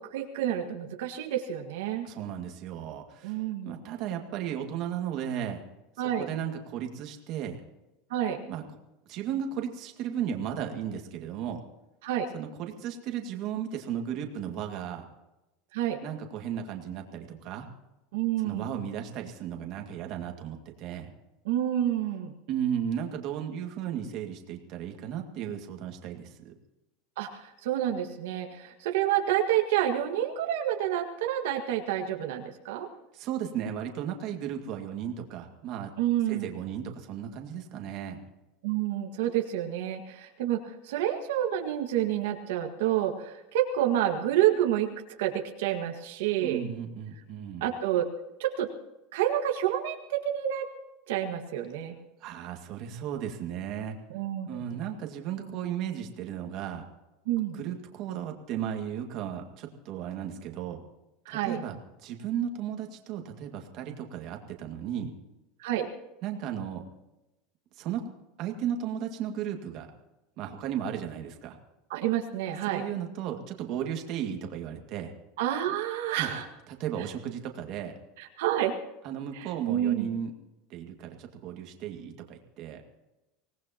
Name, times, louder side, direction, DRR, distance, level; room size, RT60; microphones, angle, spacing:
voice 1, 0.1-2.1 3.2-3.8 6.0-6.3 8.1-8.4 12.0-12.3 15.7-16.0 18.1-18.7 21.5-22.3 27.2-32.9 36.0-36.5 38.6-44.9 45.2-46.6 47.6-48.1 48.4-48.7 49.1-50.7 51.1-52.0 54.1-54.6 57.3-57.6 61.3-61.6 65.6-65.9 71.9-72.8 75.4-76.5 78.4-78.7 79.4-80.1, right 11 dB, 75° right, 3 dB, 1.7 m, -28 dB
voice 2, 2.0-5.6 6.0-7.6 8.5-8.6 9.1-11.6 12.3-15.0 16.0-17.7 18.4-21.1 22.5-26.5 33.1-35.9 36.3-38.2 46.4-47.6 52.2-54.0 54.5-56.9 57.5-60.8 61.3-61.8 62.0-65.1 66.2-66.8 67.8-68.0 68.4-69.9 70.4-71.6 72.7-75.1 76.2-76.3 76.7-77.9 79.0-80.3 80.7-82.8, right 9 dB, 45° right, 3 dB, 2.1 m, -35 dB
25.0 x 18.5 x 3.0 m, 0.96 s
supercardioid pair, 165°, 0 cm